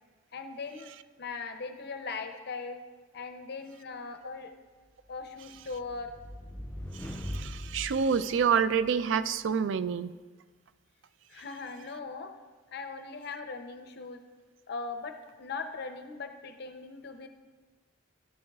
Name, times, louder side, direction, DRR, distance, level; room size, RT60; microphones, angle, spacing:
voice 1, 0.3-0.9 1.2-2.8 3.1-4.5 5.1-6.1 11.3-12.3 12.7-14.2 14.7-17.3, left 4 dB, 55° left, 7 dB, 0.5 m, -39 dB
sound 1, 5.2-9.1, equal, 15° left, 2.4 m, -41 dB
voice 2, 7.0-10.1, right 6 dB, 70° right, 13 dB, 0.4 m, -28 dB
11.5 x 10.0 x 2.3 m, 1.3 s
head